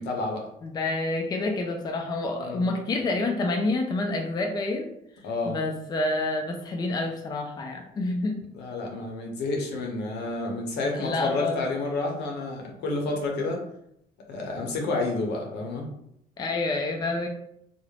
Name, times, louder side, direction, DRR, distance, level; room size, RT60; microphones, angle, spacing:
voice 1, 0.0-0.5 2.4-2.6 5.2-5.6 8.5-13.6 14.3-15.9, left 2 dB, 80° left, 1 dB, 0.7 m, -30 dB
voice 2, 0.6-4.9 5.5-8.5 10.9-11.7 16.4-17.3, left 2 dB, 25° left, 3 dB, 0.4 m, -28 dB
2.4 x 2.0 x 3.1 m, 0.77 s
cardioid pair, 110°, 17 cm